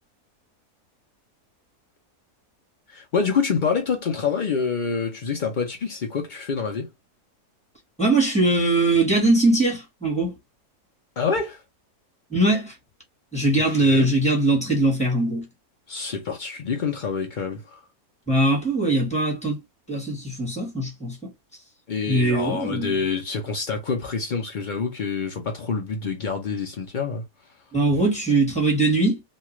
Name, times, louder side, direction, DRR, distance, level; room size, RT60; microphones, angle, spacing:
voice 1, 2.9-6.9 11.2-11.6 13.7-14.1 15.9-17.8 21.9-27.2, left 5 dB, 80° left, 0.4 m, -27 dB
voice 2, 8.0-10.3 12.3-12.7 13.3-15.4 18.3-19.6 19.9-21.3 22.1-23.0 27.7-29.2, right 2 dB, 5° left, 1.1 m, -21 dB
3.2 x 2.3 x 3.0 m
omnidirectional pair, 1.7 m